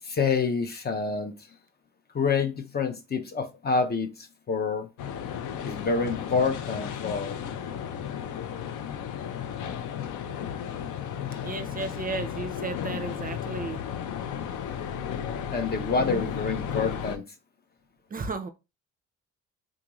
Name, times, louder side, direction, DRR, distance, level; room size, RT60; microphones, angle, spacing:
voice 1, 0.0-1.3 2.1-4.9 5.6-7.4 15.5-17.2, left 4 dB, 35° left, 0.5 m, -27 dB
sound 1, 5.0-17.2, left 8 dB, 85° left, 0.5 m, -34 dB
voice 2, 11.4-13.8 18.1-18.5, right 3 dB, 30° right, 0.5 m, -34 dB
3.7 x 2.4 x 3.0 m
cardioid pair, 90°, 30 cm